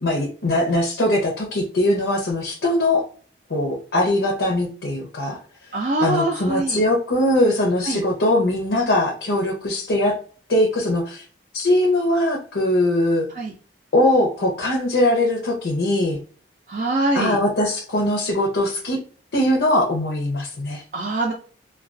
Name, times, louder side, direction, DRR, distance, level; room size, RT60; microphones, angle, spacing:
voice 1, 0.0-3.0 3.5-5.4 6.0-10.2 10.5-11.2 11.5-13.3 13.9-16.2 17.1-19.0 19.3-20.8, left 1 dB, 75° left, -2 dB, 0.6 m, -21 dB
voice 2, 5.7-6.8 7.8-8.0 13.3-13.5 16.7-17.4 20.9-21.3, right 2 dB, 45° right, 0 dB, 0.4 m, -23 dB
2.3 x 2.2 x 2.4 m, 0.41 s
head